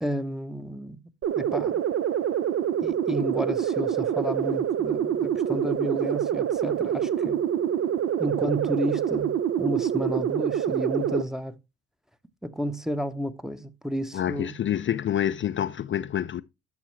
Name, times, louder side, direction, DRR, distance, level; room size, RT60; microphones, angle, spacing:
voice 1, 0.0-1.0 1.4-1.8 2.8-7.4 8.2-11.6 12.4-14.5, equal, ahead, 0.8 m, -31 dB
sound 1, 1.2-11.2, right 9 dB, 45° right, 0.6 m, -26 dB
voice 2, 14.1-16.4, left 10 dB, 40° left, 0.4 m, -27 dB
11.5 x 6.1 x 3.1 m
supercardioid pair, 70°, 30 cm